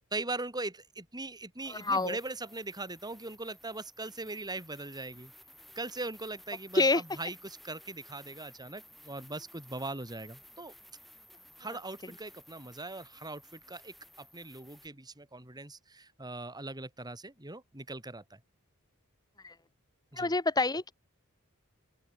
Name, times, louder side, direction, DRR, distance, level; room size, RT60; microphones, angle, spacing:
voice 1, 0.1-5.3 5.7-10.7 11.6-18.4 20.1-20.3, right 2 dB, 20° right, 3.4 m, -40 dB
sound 1, 0.9-1.0 1.6-14.9, equal, ahead, 5.5 m, -56 dB
voice 2, 1.7-2.2 6.7-7.0 19.4-19.5 20.1-20.9, left 3 dB, 20° left, 1.5 m, -27 dB
open air
head